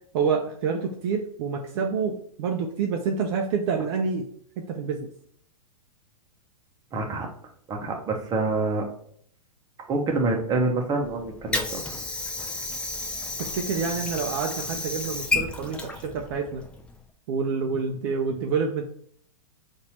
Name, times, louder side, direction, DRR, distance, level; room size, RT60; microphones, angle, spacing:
voice 1, 0.1-4.2 4.6-5.1 13.4-16.6 17.3-18.8, right 5 dB, 45° right, 2 dB, 0.6 m, -27 dB
voice 2, 6.9-7.3 7.7-8.9 9.9-11.8, right 3 dB, 20° right, 1 dB, 1.0 m, -26 dB
Water / Sink (filling or washing), 11.0-17.0, left 3 dB, 5° left, 0.4 m, -32 dB
4.2 x 2.7 x 4.2 m, 0.63 s
hypercardioid pair, 110°, 19 cm